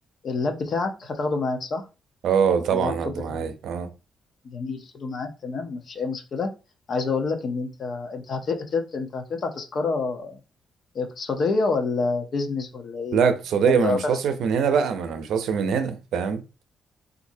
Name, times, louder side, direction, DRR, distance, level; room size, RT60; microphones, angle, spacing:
voice 1, 0.2-1.8 2.7-3.5 4.4-6.5 6.9-10.4 10.9-13.3 13.6-14.0, left 4 dB, 55° left, 0.8 m, -28 dB
voice 2, 2.2-3.9 13.1-16.4, right 6 dB, 80° right, 0.6 m, -23 dB
4.1 x 2.6 x 2.6 m
cardioid pair, 110°, 0 cm